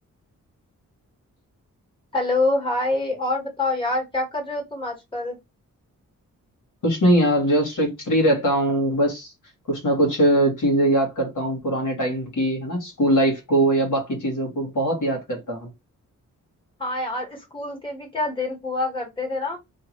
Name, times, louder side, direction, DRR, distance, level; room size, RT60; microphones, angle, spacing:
voice 1, 2.1-5.4 16.8-19.6, left 2 dB, 15° left, 1.7 m, -26 dB
voice 2, 6.8-9.3 9.7-15.7, right 1 dB, 65° left, 1.5 m, -21 dB
2.8 x 2.4 x 3.0 m
cardioid pair, 75°, 33 cm